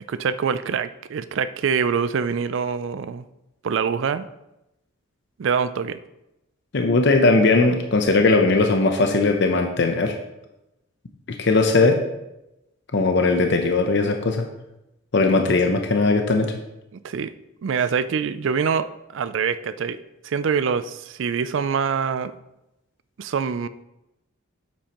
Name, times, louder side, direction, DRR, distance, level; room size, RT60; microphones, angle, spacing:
voice 1, 0.1-3.2 3.6-4.3 5.4-6.0 16.9-17.3 17.6-18.9 19.1-20.0 20.2-22.3 23.2-23.7, right 6 dB, 65° right, 13 dB, 0.4 m, -24 dB
voice 2, 6.7-10.1 11.4-12.0 12.9-14.5 15.1-16.5, left 3 dB, 60° left, 4 dB, 0.7 m, -19 dB
8.4 x 7.6 x 3.0 m, 0.91 s
head